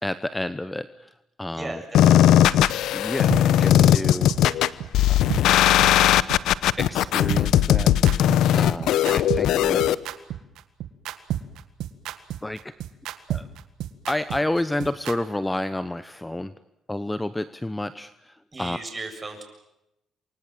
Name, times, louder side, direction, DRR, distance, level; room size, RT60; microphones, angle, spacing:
voice 1, 0.0-1.1 1.4-1.8 2.9-4.4 5.1-5.5 6.8-10.0 12.4-12.7 13.3-13.5 14.1-16.5 16.9-18.8, left 1 dB, 10° left, 13 dB, 1.0 m, -30 dB
voice 2, 1.5-2.5 18.5-19.4, right 3 dB, 25° right, 5 dB, 7.6 m, -37 dB
sound 1, 1.9-9.9, left 11 dB, 85° left, 0.9 m, -18 dB
sound 2, 3.3-3.4 3.8-3.9 4.3-4.4 4.8-4.9 5.3-5.4 5.8-5.9 6.3-6.4 6.8-6.9 7.3-15.2, right 12 dB, 85° right, 1.8 m, -30 dB
28.5 x 24.5 x 7.6 m, 0.86 s
cardioid pair, 90°, 0 cm